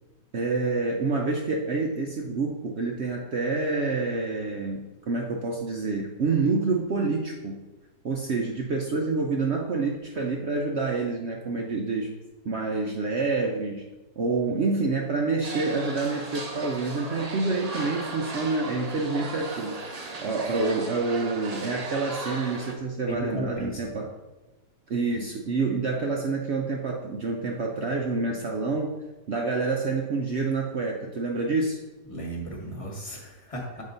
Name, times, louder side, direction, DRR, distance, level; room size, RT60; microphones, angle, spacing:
voice 1, 0.3-7.7 8.0-12.1 12.4-13.9 14.2-19.8 20.2-24.1 24.9-28.9 29.3-31.8, right 3 dB, 65° right, 0 dB, 0.7 m, -27 dB
sound 1, 15.4-22.7, right 3 dB, 90° right, 0.3 m, -36 dB
voice 2, 23.1-23.8 32.1-33.8, equal, 20° left, -1 dB, 1.2 m, -35 dB
7.4 x 5.0 x 3.9 m, 1.1 s
omnidirectional pair, 1.8 m